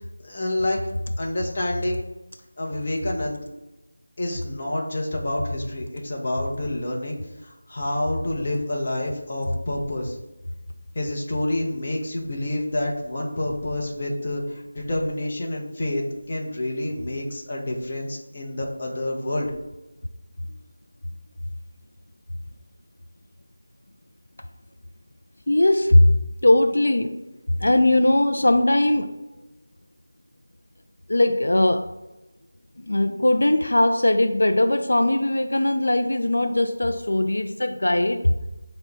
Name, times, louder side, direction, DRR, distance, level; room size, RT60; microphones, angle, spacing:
voice 1, 0.2-0.8 1.2-2.0 2.6-3.4 4.2-10.2 10.9-19.5, left 1 dB, 30° left, -1 dB, 0.6 m, -28 dB
voice 2, 25.5-26.2 26.4-27.2 27.5-29.1 31.1-31.9 32.8-38.3, left 1 dB, 70° left, 6 dB, 0.3 m, -19 dB
4.5 x 2.1 x 3.9 m, 1.0 s
figure-of-eight pair, 175°, 0 cm